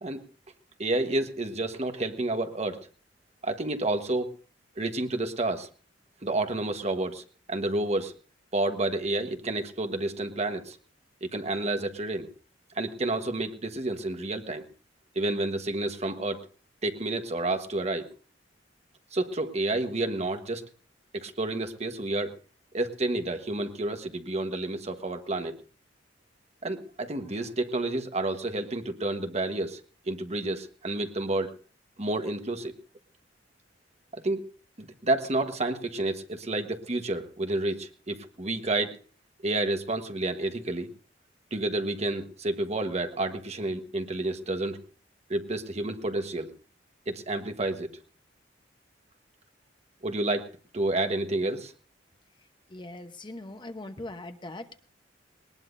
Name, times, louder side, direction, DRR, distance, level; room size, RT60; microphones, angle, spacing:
voice 1, 0.8-2.9 3.4-4.3 4.8-5.7 6.2-7.2 7.5-8.1 8.5-10.8 11.2-12.3 12.7-14.6 15.1-16.4 16.8-18.1 19.1-20.6 21.1-22.3 22.7-25.6 26.6-29.8 30.1-31.5 32.0-32.7 34.1-34.5 34.8-39.0 39.4-40.9 41.5-44.8 45.3-46.5 47.1-47.9 50.0-51.7, right 2 dB, 35° right, 7 dB, 1.3 m, -30 dB
voice 2, 52.7-54.7, left 2 dB, 25° left, 8 dB, 1.0 m, -40 dB
20.5 x 19.5 x 2.7 m, 0.39 s
head